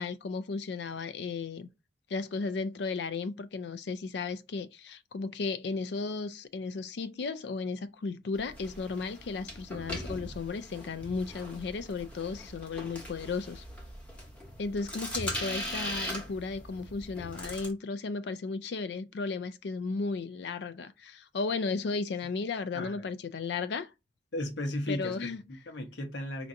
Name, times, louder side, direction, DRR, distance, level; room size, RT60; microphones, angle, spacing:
voice 1, 0.0-1.7 2.1-13.6 14.6-23.9 24.9-25.4, left 4 dB, 70° left, 0.4 m, -34 dB
sound 1, 8.3-17.7, equal, 10° left, 0.9 m, -40 dB
voice 2, 22.7-23.1 24.3-26.5, left 1 dB, 85° left, 0.9 m, -36 dB
4.5 x 2.6 x 2.6 m
head